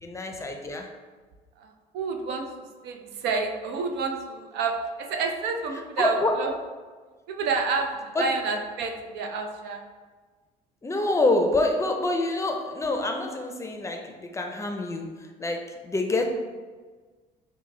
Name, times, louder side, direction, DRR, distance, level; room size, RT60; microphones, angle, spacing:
voice 1, 0.0-0.9 6.0-6.3 8.1-8.3 10.8-16.2, left 2 dB, 15° left, 3 dB, 0.5 m, -26 dB
voice 2, 1.6-2.5 2.8-6.5 7.3-9.8, right 4 dB, 85° right, 4 dB, 0.5 m, -29 dB
6.0 x 2.2 x 3.2 m, 1.4 s
cardioid pair, 110°, 17 cm